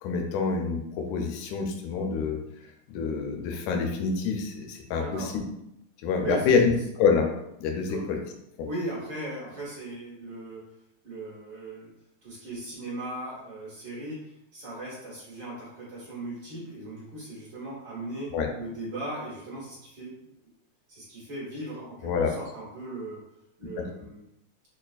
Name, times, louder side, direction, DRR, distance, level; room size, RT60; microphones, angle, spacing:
voice 1, 0.0-2.4 2.9-5.4 6.0-6.7 7.0-7.3 7.6-8.2 8.6-8.7 18.3-18.5 22.0-22.4, left 5 dB, 85° left, 3 dB, 2.0 m, -26 dB
voice 2, 4.9-5.3 6.2-6.6 7.9-8.0 8.6-10.6 11.0-11.9 12.2-20.3 20.9-23.2 23.6-24.2, right 2 dB, 50° right, -7 dB, 1.5 m, -38 dB
6.2 x 2.3 x 2.4 m, 0.80 s
omnidirectional pair, 3.3 m